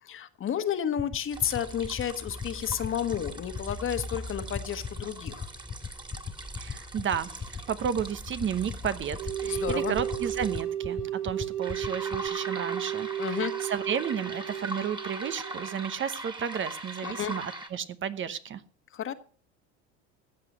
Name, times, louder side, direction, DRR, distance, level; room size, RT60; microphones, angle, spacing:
voice 1, 0.0-5.5 9.4-9.9 13.2-13.5 17.0-17.3 18.9-19.1, left 9 dB, 40° left, 10 dB, 1.5 m, -31 dB
sound 1, 1.0-12.3, left 6 dB, 20° left, 0.8 m, -36 dB
sound 2, 1.3-10.6 11.6-17.7, right 1 dB, 15° right, 2.3 m, -40 dB
voice 2, 6.6-18.6, right 8 dB, 35° right, 13 dB, 1.0 m, -33 dB
sound 3, 9.2-15.9, right 10 dB, 55° right, 3.7 m, -34 dB
15.0 x 8.3 x 6.1 m, 0.42 s
supercardioid pair, 105°, 32 cm